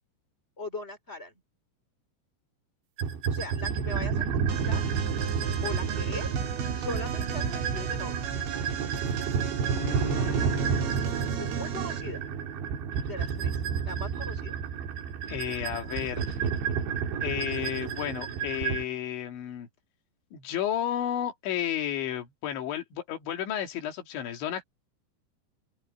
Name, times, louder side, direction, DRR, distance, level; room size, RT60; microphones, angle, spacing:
voice 1, 0.6-1.3 3.3-4.8 5.6-6.3 6.7-8.2 11.4-12.2 13.1-13.6 13.8-14.5, left 2 dB, 15° left, 3.7 m, -39 dB
sound 1, 3.0-18.8, right 6 dB, 65° right, 4.5 m, -30 dB
sound 2, 4.5-12.1, right 10 dB, 85° right, 5.4 m, -38 dB
voice 2, 9.7-11.0 15.3-16.4 17.2-19.7 20.3-24.6, left 10 dB, 70° left, 4.9 m, -32 dB
open air
omnidirectional pair, 5.7 m